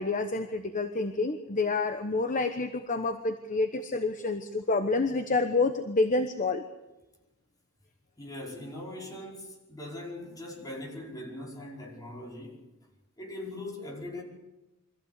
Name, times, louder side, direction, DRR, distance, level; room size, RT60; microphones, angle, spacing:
voice 1, 0.0-6.6, left 3 dB, 35° left, 8 dB, 1.1 m, -28 dB
voice 2, 8.2-12.7 13.2-14.2, left 1 dB, 15° left, -2 dB, 5.2 m, -41 dB
24.5 x 15.0 x 8.2 m, 1.0 s
head